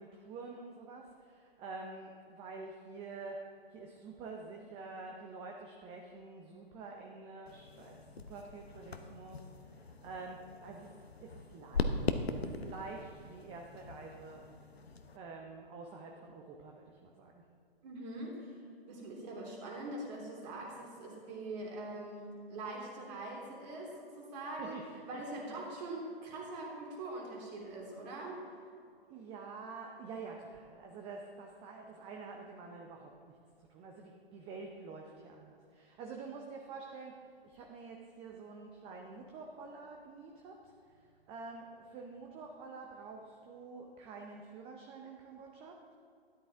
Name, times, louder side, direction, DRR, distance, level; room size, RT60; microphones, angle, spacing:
voice 1, 0.0-14.4 15.1-17.4 24.6-24.8 25.1-25.2 25.5-25.6 29.1-33.3 33.7-45.9, right 4 dB, 20° right, 1 dB, 0.7 m, -48 dB
sound 1, 7.5-15.2, left 3 dB, 90° left, 0.9 m, -40 dB
voice 2, 17.8-28.7, right 2 dB, 40° right, -2 dB, 3.1 m, -43 dB
12.5 x 10.5 x 3.5 m, 2.5 s
hypercardioid pair, 130°, 30 cm